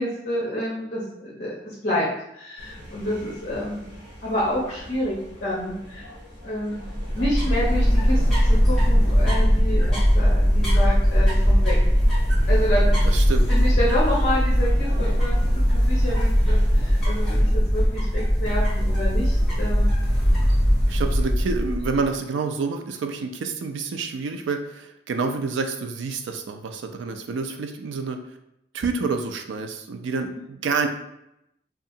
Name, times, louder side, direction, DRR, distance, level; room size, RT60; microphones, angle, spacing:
voice 1, 0.0-3.8 4.2-6.1 6.4-6.8 7.1-11.8 12.5-12.9 13.5-15.4 15.7-19.9 30.3-30.4, left 1 dB, 45° left, -6 dB, 0.7 m, -28 dB
sound 1, 2.6-17.4, equal, 65° right, 1.1 m, -42 dB
sound 2, 6.8-22.1, equal, ahead, 1.1 m, -20 dB
voice 2, 13.0-13.5 20.9-28.2 28.7-30.9, right 4 dB, 85° right, 6 dB, 0.3 m, -28 dB
2.7 x 2.4 x 2.6 m, 0.82 s
head